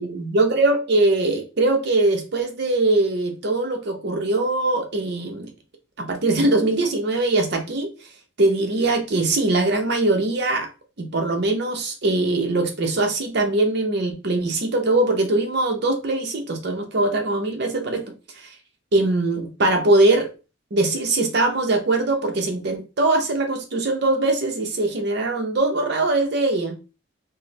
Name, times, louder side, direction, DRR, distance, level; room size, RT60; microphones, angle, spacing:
voice 1, 0.0-5.5 6.0-7.9 8.4-10.7 11.0-18.5 18.9-20.3 20.7-26.8, right 2 dB, 60° right, 0.7 m, -21 dB
4.4 x 2.1 x 3.2 m
head